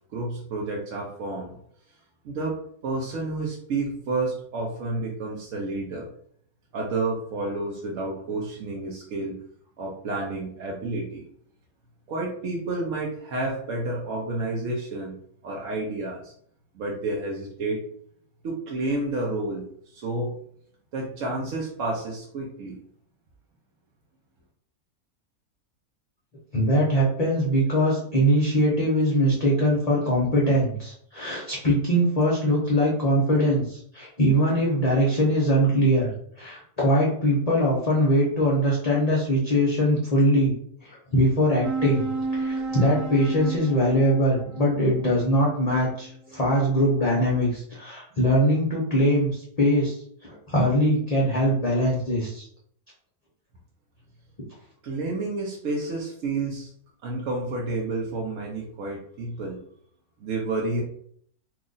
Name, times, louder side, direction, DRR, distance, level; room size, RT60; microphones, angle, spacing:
voice 1, 0.1-1.6 2.2-6.1 6.7-9.4 9.8-11.3 12.1-15.2 15.4-16.3 16.7-17.9 18.4-20.4 20.9-22.8 54.8-56.7 57.0-59.6 60.2-60.8, right 2 dB, 65° right, -2 dB, 0.9 m, -30 dB
voice 2, 26.5-36.1 36.4-40.5 40.8-42.0 42.3-52.5, equal, 35° left, -5 dB, 0.6 m, -22 dB
sound 1, 41.6-46.5, right 3 dB, 85° right, 1.2 m, -32 dB
3.0 x 2.4 x 3.8 m, 0.63 s
omnidirectional pair, 1.6 m